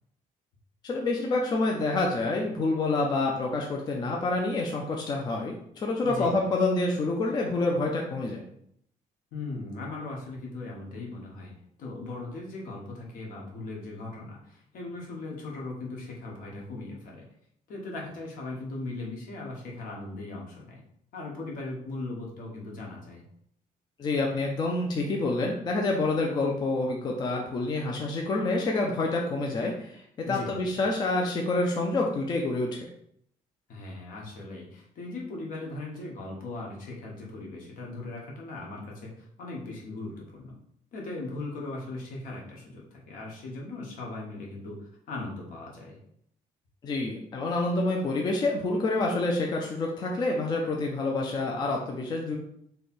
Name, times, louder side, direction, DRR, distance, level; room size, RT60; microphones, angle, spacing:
voice 1, 0.8-8.4 24.0-32.9 46.8-52.4, left 2 dB, 30° left, 0 dB, 0.5 m, -27 dB
voice 2, 6.0-6.5 9.3-17.2 17.7-20.8 21.1-23.2 30.2-30.8 33.7-40.6 40.9-46.0, left 2 dB, 70° left, -2 dB, 1.2 m, -38 dB
3.2 x 2.9 x 4.3 m, 0.70 s
cardioid pair, 175°, 15 cm